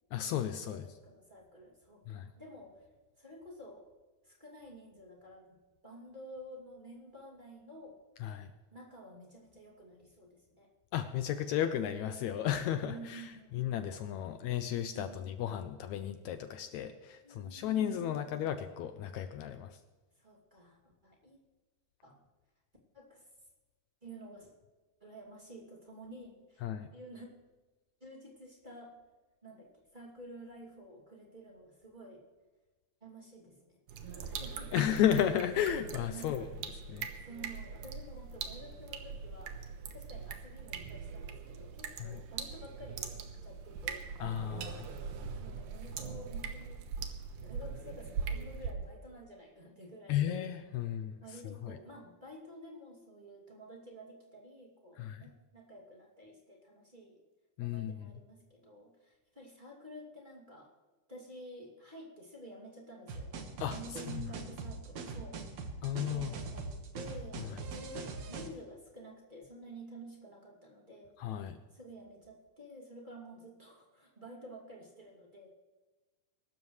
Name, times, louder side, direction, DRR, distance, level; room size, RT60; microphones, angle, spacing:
voice 1, 0.1-0.8 2.1-2.3 8.2-8.5 10.9-19.8 26.6-26.9 34.7-36.5 36.9-37.1 42.0-42.2 44.2-44.9 50.1-51.2 51.4-51.8 55.0-55.2 57.6-58.1 63.6-63.8 64.1-64.2 65.8-66.3 71.2-71.6, left 10 dB, 80° left, 9 dB, 1.9 m, -34 dB
voice 2, 0.6-2.9 3.2-3.9 4.2-5.6 5.8-8.0 8.7-10.7 12.8-13.8 14.9-15.4 17.2-18.2 20.1-21.4 22.0-22.2 22.9-23.3 24.0-24.5 25.0-27.3 28.0-28.9 29.4-32.2 33.0-33.8 34.2-34.9 36.1-36.5 37.1-43.1 43.4-44.1 45.4-46.9 47.1-50.4 51.2-57.2 57.6-60.7 61.1-65.7 66.1-75.5, right 1 dB, 15° right, -2 dB, 2.4 m, -51 dB
sound 1, 33.9-48.7, right 6 dB, 85° right, 2.7 m, -42 dB
sound 2, 63.1-68.5, right 4 dB, 60° right, 2.6 m, -42 dB
23.5 x 12.5 x 3.2 m, 1.2 s
omnidirectional pair, 3.6 m